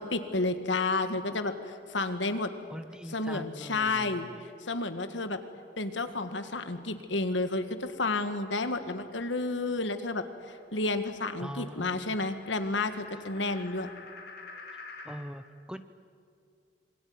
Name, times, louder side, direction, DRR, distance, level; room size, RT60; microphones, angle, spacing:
voice 1, 0.0-2.5 3.1-4.3 4.6-5.4 5.8-13.9, left 3 dB, 75° left, 9 dB, 1.8 m, -31 dB
voice 2, 2.7-4.5 11.4-12.3 14.7-14.8 15.0-15.8, equal, 5° right, 11 dB, 0.8 m, -42 dB
sound 1, 9.8-15.3, left 3 dB, 60° left, 3.9 m, -50 dB
26.5 x 22.0 x 9.6 m, 2.3 s
head